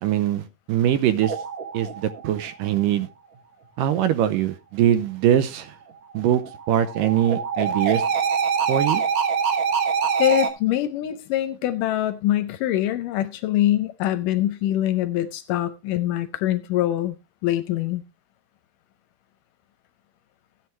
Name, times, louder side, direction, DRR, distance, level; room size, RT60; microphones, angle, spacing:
voice 1, 0.0-1.4 1.7-3.1 3.8-5.8 6.1-6.4 6.7-8.1 8.7-9.0, right 11 dB, 75° right, 2.2 m, -22 dB
sound 1, 1.2-2.6 6.1-10.5, right 6 dB, 60° right, 2.1 m, -25 dB
voice 2, 10.2-17.2 17.4-18.0, left 13 dB, 75° left, 2.0 m, -24 dB
14.0 x 9.5 x 3.1 m
omnidirectional pair, 4.2 m